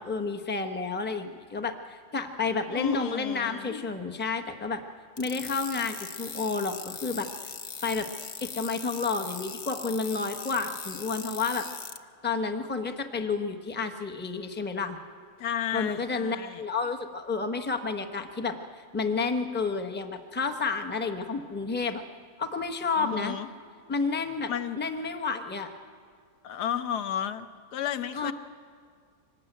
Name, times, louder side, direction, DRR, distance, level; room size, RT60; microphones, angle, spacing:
voice 1, 0.0-4.8 5.2-7.3 7.8-8.1 8.4-11.6 12.2-15.0 15.7-22.0 22.4-23.4 23.9-24.5 24.8-25.7 28.1-28.3, left 4 dB, 10° left, 6 dB, 0.7 m, -30 dB
voice 2, 2.7-3.8 15.4-16.7 23.0-23.5 24.5-24.8 26.4-28.3, left 10 dB, 65° left, 11 dB, 1.4 m, -33 dB
sound 1, 5.2-12.0, left 5 dB, 45° left, 0.7 m, -40 dB
24.5 x 19.0 x 9.1 m, 2.1 s
omnidirectional pair, 1.9 m